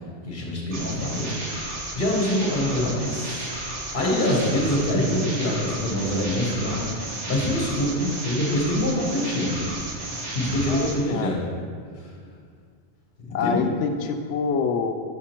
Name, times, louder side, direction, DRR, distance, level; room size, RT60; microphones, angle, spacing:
voice 1, 0.2-1.3 1.9-3.5 3.9-6.9 7.3-9.7 10.3-11.5 13.4-13.6, left 1 dB, 45° left, -3 dB, 1.4 m, -24 dB
sound 1, 0.7-11.0, right 2 dB, 80° right, 1.3 m, -33 dB
voice 2, 10.7-11.4 13.3-14.9, left 5 dB, 90° left, 6 dB, 0.9 m, -26 dB
6.6 x 4.9 x 4.4 m, 2.1 s
omnidirectional pair, 1.2 m